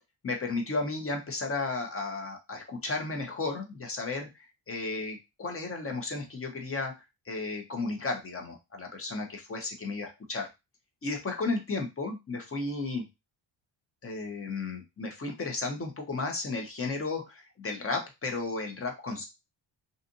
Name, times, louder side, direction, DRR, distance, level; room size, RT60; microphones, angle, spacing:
voice 1, 0.2-4.3 4.7-6.9 7.3-10.5 11.0-13.1 14.0-19.2, left 3 dB, 30° left, 3 dB, 0.8 m, -33 dB
2.6 x 2.4 x 2.6 m, 0.23 s
cardioid pair, 100°, 47 cm